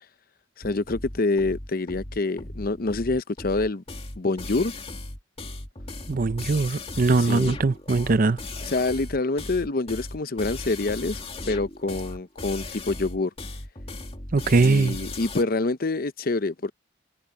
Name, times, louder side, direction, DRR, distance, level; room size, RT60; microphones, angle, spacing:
voice 1, 0.6-3.8 4.2-4.7 7.3-7.5 8.7-13.3 14.6-16.7, left 3 dB, 50° left, 0.8 m, -26 dB
sound 1, 0.6-15.4, left 2 dB, 30° left, 2.3 m, -37 dB
voice 2, 6.1-8.4 14.3-15.0, right 3 dB, 50° right, 0.6 m, -21 dB
head